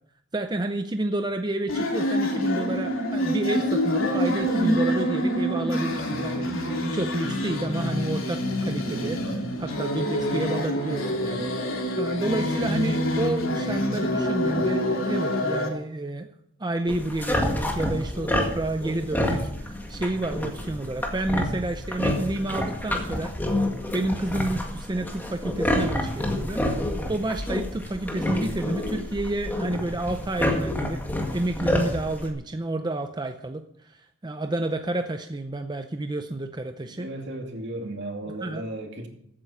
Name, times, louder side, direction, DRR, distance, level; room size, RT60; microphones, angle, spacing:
voice 1, 0.3-16.3 16.6-19.5 19.9-23.3 23.9-31.0 31.3-37.1 38.4-38.6, right 2 dB, 20° right, 7 dB, 0.6 m, -30 dB
sound 1, 1.7-15.7, equal, 80° left, 2.9 m, -26 dB
sound 2, 16.9-32.3, left 1 dB, 10° left, 1.9 m, -28 dB
voice 2, 36.8-39.1, right 1 dB, 60° right, 2 dB, 2.6 m, -35 dB
15.0 x 9.0 x 5.7 m, 0.72 s
head